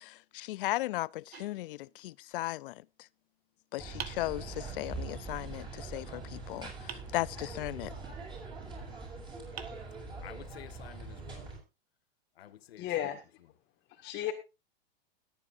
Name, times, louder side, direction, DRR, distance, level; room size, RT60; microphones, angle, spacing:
voice 1, 0.0-2.7 3.7-7.9, left 17 dB, 65° left, 0.5 m, -36 dB
sound 1, 1.3-2.3 4.0-5.0 6.9-7.8 9.0-9.1 9.6-10.5, right 8 dB, 90° right, 1.6 m, -47 dB
sound 2, 3.8-11.6, right 3 dB, 15° right, 6.6 m, -43 dB
voice 2, 8.4-8.8 9.5-9.7 10.2-11.5 12.3-13.1, left 11 dB, 80° left, 1.5 m, -52 dB
voice 3, 12.8-13.2 14.0-14.3, left 12 dB, 35° left, 1.9 m, -33 dB
21.5 x 9.0 x 2.6 m
hypercardioid pair, 130°, 30 cm